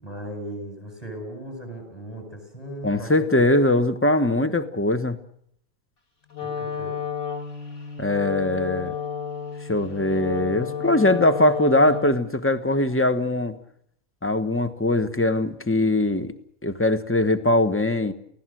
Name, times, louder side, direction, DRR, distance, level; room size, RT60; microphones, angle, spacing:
voice 1, 0.0-3.5 6.4-6.9, right 1 dB, 25° left, 4 dB, 8.0 m, -37 dB
voice 2, 2.8-5.2 8.0-8.9 9.7-13.6 14.2-16.3 16.6-18.1, left 1 dB, 10° left, 10 dB, 1.1 m, -21 dB
Wind instrument woodwind instrument, 6.3-12.3, left 7 dB, 55° left, 3.1 m, -32 dB
29.5 x 17.0 x 7.8 m, 0.70 s
omnidirectional pair, 1.5 m